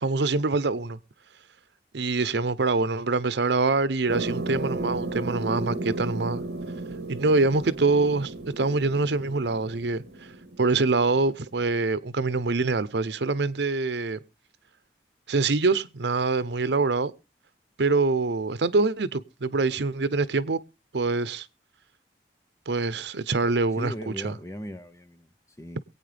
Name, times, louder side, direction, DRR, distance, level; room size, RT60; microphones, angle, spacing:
voice 1, 0.0-1.0 1.9-6.4 7.1-10.0 10.6-14.2 15.3-17.1 17.8-20.6 20.9-21.5 22.7-24.3, right 3 dB, 80° right, 0.7 m, -25 dB
sound 1, 4.1-11.3, right 2 dB, 65° right, 1.1 m, -34 dB
voice 2, 23.8-25.8, equal, 15° left, 0.6 m, -38 dB
23.0 x 8.8 x 3.4 m
head